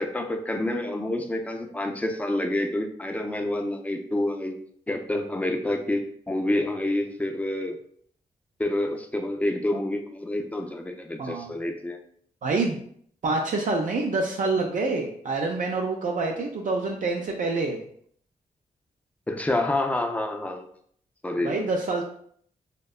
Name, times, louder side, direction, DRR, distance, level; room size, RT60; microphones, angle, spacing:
voice 1, 0.0-4.6 4.9-7.8 8.6-12.0 19.3-20.7 21.2-21.5, left 1 dB, 10° left, 4 dB, 0.4 m, -28 dB
voice 2, 11.2-11.5 12.4-12.8 13.2-17.8 21.4-22.0, right 3 dB, 60° right, 0 dB, 0.4 m, -26 dB
2.7 x 2.2 x 2.3 m, 0.62 s
cardioid pair, 55°, 15 cm